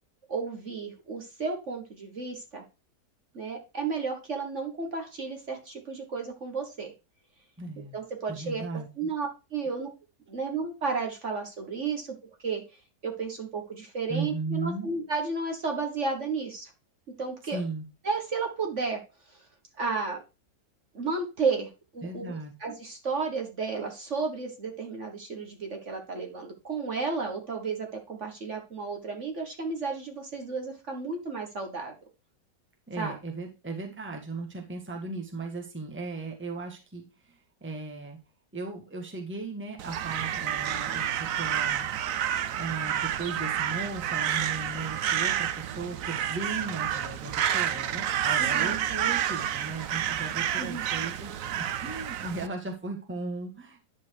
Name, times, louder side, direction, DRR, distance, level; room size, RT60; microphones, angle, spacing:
voice 1, 0.3-2.6 3.3-6.9 7.9-8.6 9.0-9.9 10.3-12.1 12.4-12.6 13.0-16.7 17.2-17.6 18.0-19.0 19.8-20.2 20.9-31.9 33.0-33.2 48.4-48.7 50.6-50.8, right 4 dB, 45° right, 3 dB, 1.7 m, -32 dB
voice 2, 7.6-8.0 8.3-9.1 14.1-14.9 17.4-17.8 22.0-22.5 32.9-38.2 38.5-41.9 42.5-53.8, right 3 dB, 5° right, 2 dB, 1.4 m, -37 dB
Crow, 39.8-52.5, right 10 dB, 65° right, 0.9 m, -29 dB
10.5 x 4.5 x 4.6 m, 0.28 s
omnidirectional pair, 1.8 m